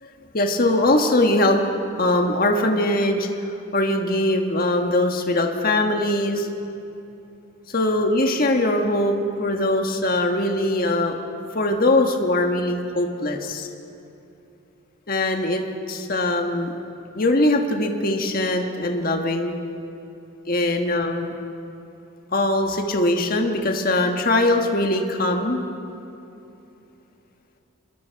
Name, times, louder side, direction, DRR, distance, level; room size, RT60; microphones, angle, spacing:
voice 1, 0.3-1.6 2.0-3.3 3.7-6.5 7.7-11.2 11.5-13.7 15.1-16.7 17.1-19.5 20.5-21.3 22.3-25.6, left 1 dB, 45° left, 3 dB, 1.5 m, -21 dB
26.5 x 22.0 x 4.7 m, 2.8 s
head